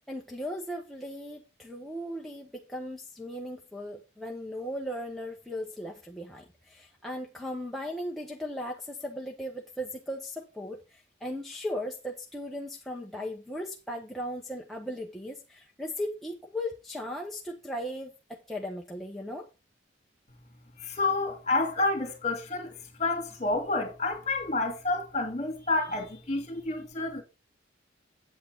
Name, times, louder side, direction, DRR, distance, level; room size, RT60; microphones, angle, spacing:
voice 1, 0.1-19.5, equal, ahead, 1.0 m, -37 dB
voice 2, 20.8-22.7 23.0-27.2, left 2 dB, 35° left, 2.4 m, -29 dB
8.6 x 8.5 x 3.6 m
head